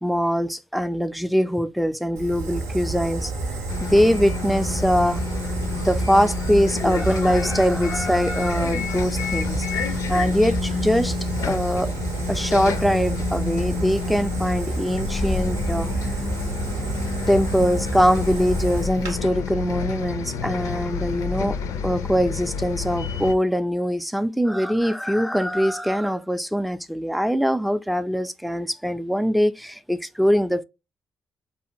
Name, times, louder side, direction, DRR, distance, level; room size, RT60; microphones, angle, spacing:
voice 1, 0.0-3.3 3.8-5.2 5.7-11.2 11.4-11.9 12.3-16.1 17.3-21.6 21.8-30.6, equal, ahead, 0.3 m, -22 dB
Fire, 2.2-19.2, right 3 dB, 85° right, 0.6 m, -29 dB
Bus, 3.7-23.3, left 6 dB, 80° left, 0.4 m, -30 dB
2.6 x 2.4 x 2.8 m
supercardioid pair, 60°, 6 cm